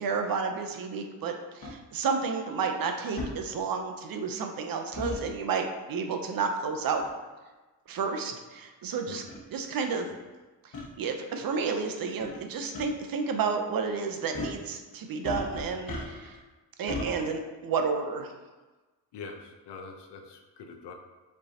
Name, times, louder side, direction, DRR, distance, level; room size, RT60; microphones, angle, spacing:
voice 1, 0.0-7.0 7.9-9.2 9.5-10.1 11.0-16.4 16.8-18.3, right 5 dB, 55° right, 4 dB, 0.7 m, -31 dB
sound 1, 1.6-1.7 3.2-3.3 4.9-5.2 7.0-7.2 8.0-8.1 8.9-9.0 9.3-9.4 10.7-10.9 12.2-12.4 12.7-12.8 14.3-14.6 15.2-16.4 16.9-17.1, left 2 dB, 50° left, 1.1 m, -35 dB
voice 2, 19.1-20.9, left 4 dB, 70° left, 4 dB, 0.7 m, -44 dB
5.1 x 3.3 x 2.8 m, 1.2 s
cardioid pair, 80°, 42 cm